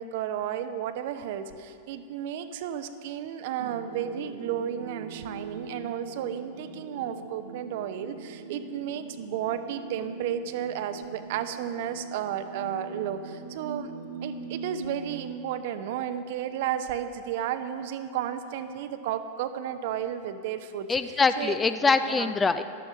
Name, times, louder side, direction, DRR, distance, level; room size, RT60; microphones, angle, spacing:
voice 1, 0.0-13.9 14.2-21.6 22.0-22.3, right 10 dB, 50° right, 10 dB, 0.7 m, -33 dB
sound 1, 3.6-15.3, right 3 dB, 70° right, 1.1 m, -41 dB
voice 2, 20.9-22.6, left 4 dB, 15° left, 11 dB, 0.4 m, -23 dB
14.5 x 12.0 x 3.8 m, 2.4 s
figure-of-eight pair, 90°, 0 cm